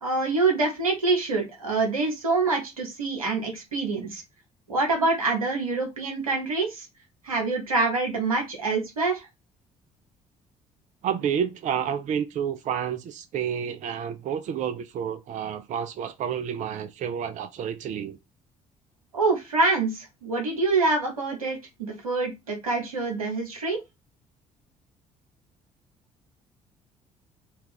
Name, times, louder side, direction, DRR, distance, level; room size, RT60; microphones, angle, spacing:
voice 1, 0.0-4.2 4.7-6.9 7.2-9.3 19.1-23.8, right 3 dB, 90° right, 0.9 m, -26 dB
voice 2, 11.0-18.2, right 8 dB, 45° right, 0.4 m, -30 dB
4.2 x 2.3 x 3.5 m
figure-of-eight pair, 50°, 18 cm